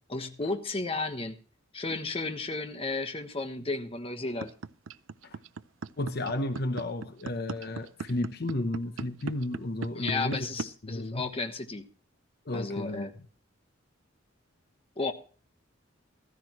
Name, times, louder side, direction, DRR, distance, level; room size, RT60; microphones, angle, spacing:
voice 1, 0.1-1.4 1.7-4.5 9.9-11.8 12.5-13.1 15.0-15.1, left 3 dB, 30° left, 1.2 m, -33 dB
sound 1, 4.4-10.6, right 4 dB, 85° right, 0.6 m, -36 dB
voice 2, 6.0-10.5 10.8-11.2 12.5-13.1, left 1 dB, 55° left, 0.9 m, -33 dB
15.0 x 14.0 x 3.0 m
head